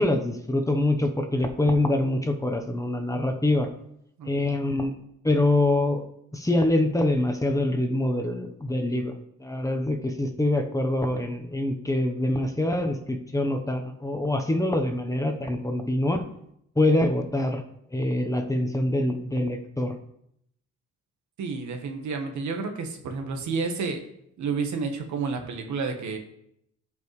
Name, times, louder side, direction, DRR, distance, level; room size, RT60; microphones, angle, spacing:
voice 1, 0.0-3.7 4.2-4.9 5.2-6.0 6.3-9.1 9.4-16.2 16.8-17.6 17.9-19.9, left 1 dB, 10° left, 4 dB, 1.0 m, -25 dB
voice 2, 4.2-4.5 21.4-24.0 24.4-26.2, right 4 dB, 70° right, 5 dB, 1.4 m, -30 dB
13.0 x 5.4 x 3.2 m, 0.75 s
cardioid pair, 90°, 30 cm